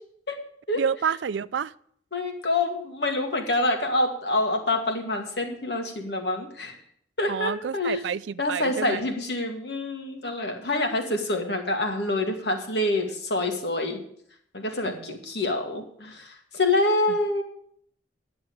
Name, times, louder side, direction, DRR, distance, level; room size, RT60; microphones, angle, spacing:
voice 1, 0.8-1.7 7.3-9.0 14.9-15.2, right 7 dB, 85° right, 18 dB, 0.4 m, -29 dB
voice 2, 2.1-6.8 7.2-8.0 8.4-14.0 14.5-17.4, left 2 dB, 65° left, 3 dB, 2.2 m, -26 dB
10.5 x 6.8 x 8.7 m, 0.66 s
head